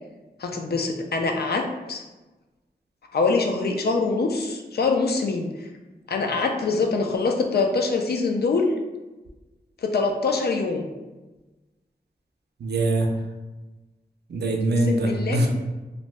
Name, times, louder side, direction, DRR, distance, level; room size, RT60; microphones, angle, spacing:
voice 1, 0.4-2.0 3.1-5.5 6.1-8.7 9.8-10.9 14.9-15.5, left 4 dB, 75° left, 3 dB, 0.4 m, -24 dB
voice 2, 12.6-13.1 14.3-15.5, right 1 dB, 85° right, 2 dB, 0.4 m, -22 dB
2.6 x 2.1 x 3.2 m, 1.1 s
wide cardioid pair, 95°, 17 cm